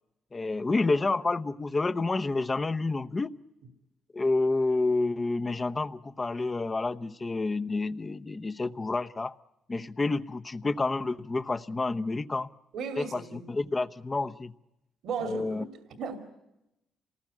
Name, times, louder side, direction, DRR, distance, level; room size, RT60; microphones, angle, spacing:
voice 1, 0.3-3.3 4.1-9.3 9.7-12.5 13.0-14.5 15.2-15.6, left 3 dB, 25° left, 12 dB, 0.9 m, -29 dB
voice 2, 12.7-13.5 15.0-16.2, right 5 dB, 75° right, 7 dB, 2.6 m, -36 dB
27.5 x 19.0 x 9.7 m, 0.91 s
cardioid pair, 90°, 0 cm